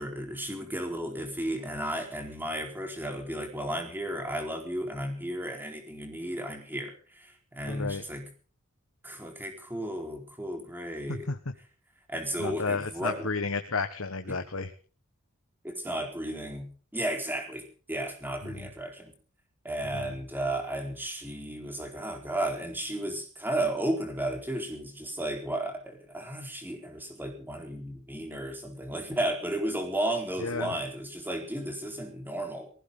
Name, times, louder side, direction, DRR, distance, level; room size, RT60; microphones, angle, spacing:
voice 1, 0.0-8.3 9.0-11.3 12.1-13.3 14.3-14.4 15.6-16.7 16.9-19.1 19.6-32.7, right 1 dB, 10° right, 4 dB, 4.2 m, -34 dB
voice 2, 7.6-8.0 11.1-11.4 12.4-14.7 18.4-18.7 19.9-20.2 30.4-30.7, left 4 dB, 70° left, 8 dB, 1.5 m, -32 dB
19.0 x 16.0 x 3.9 m, 0.40 s
head